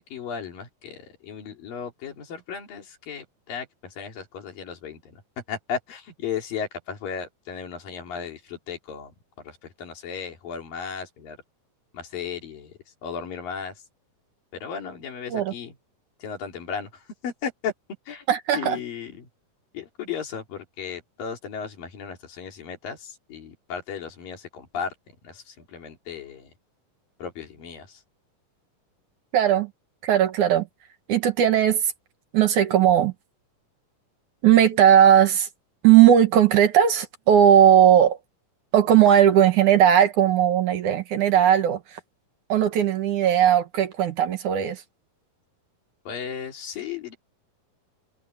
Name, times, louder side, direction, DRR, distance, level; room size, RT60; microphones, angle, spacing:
voice 1, 0.0-5.2 5.5-9.1 9.4-11.4 11.9-13.8 14.5-15.7 16.2-17.7 18.1-18.3 18.5-19.3 19.7-24.9 25.2-26.5 27.2-28.0 46.1-47.2, left 7 dB, 70° left, 4.9 m, -35 dB
voice 2, 18.3-18.8 29.3-29.7 30.0-30.7 31.1-31.8 32.3-33.1 34.4-35.5 35.8-38.2 38.7-42.0 42.5-44.8, right 10 dB, 65° right, 2.7 m, -18 dB
omnidirectional pair, 4.1 m